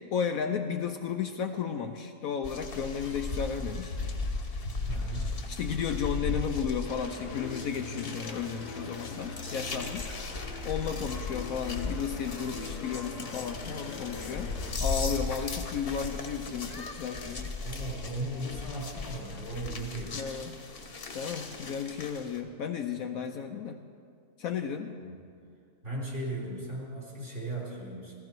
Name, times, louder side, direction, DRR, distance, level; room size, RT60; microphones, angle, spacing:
voice 1, 0.1-4.0 5.5-10.1 10.6-14.5 14.8-17.5 20.1-20.6 21.1-23.8 24.4-24.9, left 7 dB, 70° left, 6 dB, 1.0 m, -33 dB
sound 1, 2.4-22.4, left 3 dB, 40° left, 1.2 m, -37 dB
voice 2, 4.9-5.3 17.6-20.2 25.0-25.2 25.8-28.1, right 1 dB, 45° right, -5 dB, 4.2 m, -37 dB
sound 2, 6.9-14.7, left 3 dB, 85° left, 1.8 m, -42 dB
15.0 x 15.0 x 4.6 m, 2.2 s
omnidirectional pair, 1.7 m